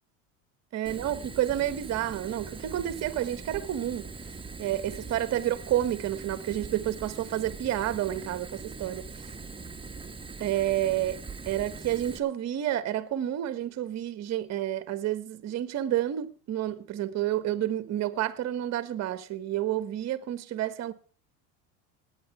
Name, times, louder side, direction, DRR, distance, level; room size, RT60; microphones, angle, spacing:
voice 1, 0.7-4.1 4.6-9.1 10.4-11.2 11.5-20.9, right 12 dB, 45° right, 1.2 m, -30 dB
Fire, 0.9-12.2, right 4 dB, 15° right, 1.5 m, -42 dB
18.0 x 9.2 x 5.9 m
supercardioid pair, 95°, 37 cm